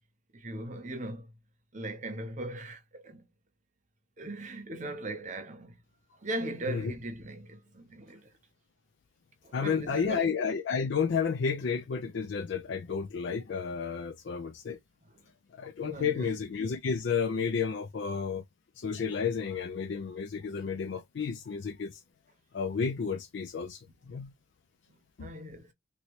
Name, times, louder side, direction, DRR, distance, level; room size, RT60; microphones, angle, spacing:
voice 1, 0.3-1.3 1.7-3.3 4.2-5.8 6.2-8.3 9.4-10.3 15.0-15.2 15.8-16.3 25.2-25.7, right 1 dB, 35° right, 0.8 m, -39 dB
voice 2, 9.5-14.8 15.5-18.4 18.8-22.0 22.5-24.3 25.2-25.3, left 6 dB, 60° left, 0.4 m, -31 dB
3.0 x 2.7 x 3.0 m
head